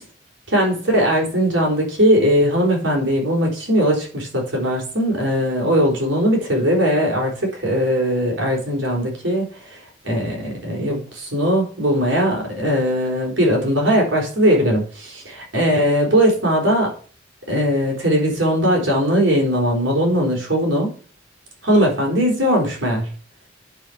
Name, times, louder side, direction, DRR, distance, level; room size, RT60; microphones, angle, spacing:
voice 1, 0.5-17.0 17.5-20.9 21.6-23.1, equal, 75° right, 0 dB, 4.3 m, -19 dB
10.5 x 5.2 x 6.9 m, 0.42 s
head